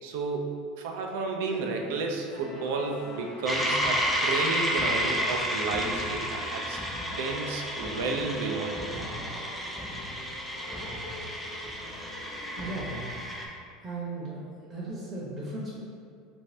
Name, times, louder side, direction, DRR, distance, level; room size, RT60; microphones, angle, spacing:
voice 1, 0.0-6.8 7.2-9.1, right 3 dB, 80° right, 2 dB, 0.4 m, -32 dB
sound 1, 1.4-12.7, left 1 dB, 80° left, 1.0 m, -45 dB
sound 2, 3.5-13.5, equal, ahead, 0.5 m, -31 dB
voice 2, 12.6-13.1 13.8-14.4 14.7-15.7, right 2 dB, 30° right, -7 dB, 0.8 m, -36 dB
3.2 x 2.6 x 3.2 m, 2.3 s
supercardioid pair, 135°, 0 cm